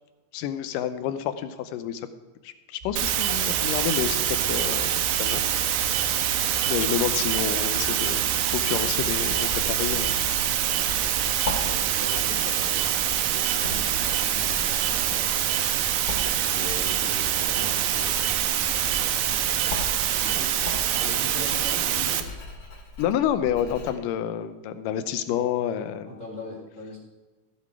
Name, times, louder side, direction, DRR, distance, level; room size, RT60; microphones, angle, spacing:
voice 1, 0.3-2.0 2.4-5.4 5.7-5.9 6.7-10.2 10.6-10.8 23.0-26.2, left 10 dB, 80° left, 10 dB, 2.2 m, -29 dB
sound 1, 2.8-10.4, left 5 dB, 55° right, 0.9 m, -41 dB
sound 2, 3.0-22.2, right 10 dB, 80° right, 2.5 m, -25 dB
Writing, 8.8-23.9, left 2 dB, 40° left, 2.8 m, -39 dB
voice 2, 11.6-15.3 16.3-18.3 20.2-20.5 20.9-22.2 25.3-25.5 26.1-27.0, left 1 dB, 25° left, -3 dB, 2.0 m, -40 dB
14.5 x 7.6 x 4.7 m, 1.3 s
omnidirectional pair, 4.1 m